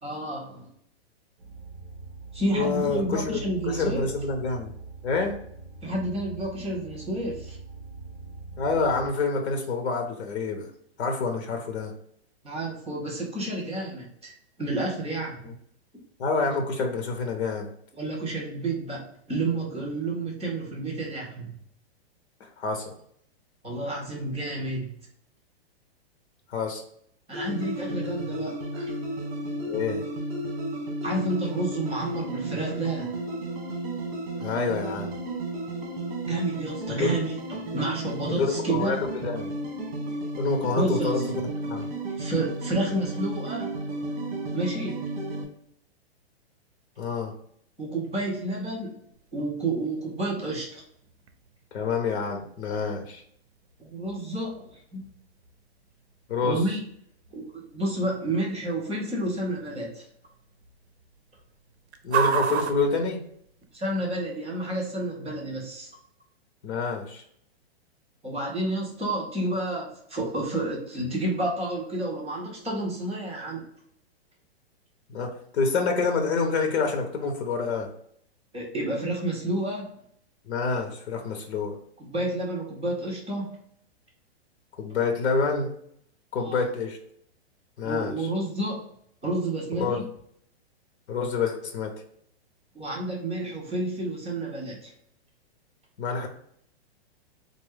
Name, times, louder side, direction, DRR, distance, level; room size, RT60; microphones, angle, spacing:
voice 1, 0.0-0.7 2.3-4.1 5.8-7.6 12.4-15.5 18.0-21.5 23.6-24.9 27.3-28.9 31.0-33.1 36.2-39.0 40.7-41.2 42.2-43.7 44.5-45.1 47.8-49.0 49.3-50.8 53.8-55.0 56.4-56.8 57.3-60.0 63.7-65.9 68.2-73.6 78.5-79.9 82.0-83.6 86.4-86.6 87.8-88.8 89.2-90.0 92.7-94.9, right 2 dB, 5° left, -16 dB, 0.3 m, -30 dB
sound 1, 1.4-9.1, right 3 dB, 30° right, 1.0 m, -43 dB
voice 2, 2.5-4.7 5.0-5.4 8.6-10.7 11.0-11.9 16.2-17.7 22.4-22.9 26.5-26.8 29.7-30.0 34.4-35.1 37.0-37.2 38.4-39.0 39.2-39.5 40.4-41.2 41.7-41.9 47.0-47.3 51.7-53.2 56.3-56.6 62.0-63.2 66.6-67.2 75.1-77.9 80.5-81.8 84.8-85.7 86.3-87.0 87.8-88.1 89.8-90.0 91.1-91.9 96.0-96.3, left 4 dB, 85° left, 3 dB, 1.0 m, -27 dB
sound 2, 27.3-45.4, right 1 dB, 45° right, 1.3 m, -33 dB
sound 3, 49.1-63.9, right 7 dB, 75° right, 0.6 m, -37 dB
3.8 x 2.6 x 3.3 m, 0.67 s
hypercardioid pair, 175°, 32 cm